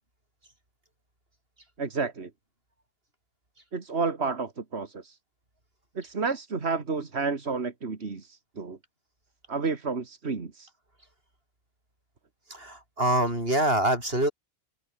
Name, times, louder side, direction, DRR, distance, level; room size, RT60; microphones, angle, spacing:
voice 1, 1.8-2.3 3.7-5.2 6.0-8.8 9.5-10.7, right 4 dB, 85° right, 2.3 m, -31 dB
voice 2, 12.5-14.3, right 1 dB, 65° right, 8.1 m, -25 dB
open air
omnidirectional pair, 1.1 m